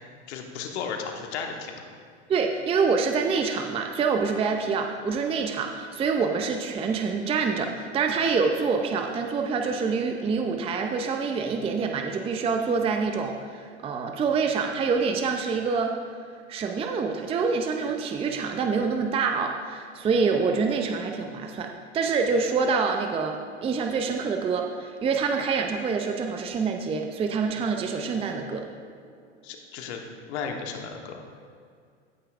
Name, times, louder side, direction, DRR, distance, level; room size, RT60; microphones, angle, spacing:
voice 1, 0.3-1.8 29.4-30.0 30.3-31.2, left 6 dB, 70° left, 3 dB, 1.3 m, -34 dB
voice 2, 2.3-15.9 16.5-28.7, right 5 dB, 15° right, 4 dB, 0.5 m, -26 dB
16.0 x 5.6 x 2.5 m, 2.2 s
hypercardioid pair, 105°, 35 cm